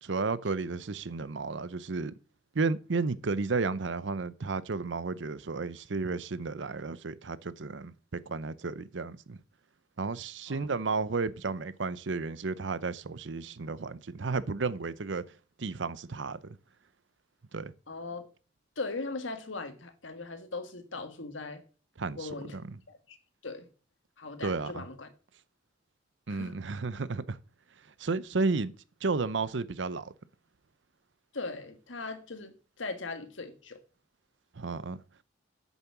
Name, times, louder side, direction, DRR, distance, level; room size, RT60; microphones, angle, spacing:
voice 1, 0.0-2.1 2.5-9.4 10.0-15.2 15.6-16.6 17.5-17.7 22.0-22.8 24.4-24.9 26.3-27.4 28.0-28.7 29.0-30.1 34.6-35.0, right 4 dB, 70° right, 0.7 m, -33 dB
voice 2, 17.9-18.3 18.8-21.6 22.1-22.5 22.9-23.2 23.4-23.7 24.2-25.1 26.3-26.5 31.3-33.8, left 3 dB, 90° left, 1.6 m, -39 dB
8.3 x 7.0 x 5.9 m
head